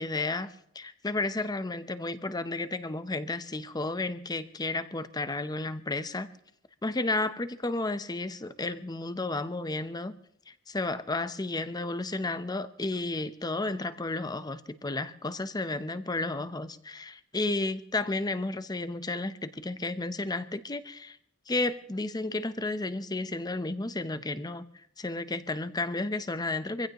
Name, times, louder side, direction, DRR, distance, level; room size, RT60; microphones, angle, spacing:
voice 1, 0.0-6.3 6.8-10.2 10.5-21.2 21.5-24.6 25.0-26.9, left 2 dB, 20° left, 12 dB, 0.7 m, -32 dB
24.5 x 15.5 x 3.0 m, 0.70 s
head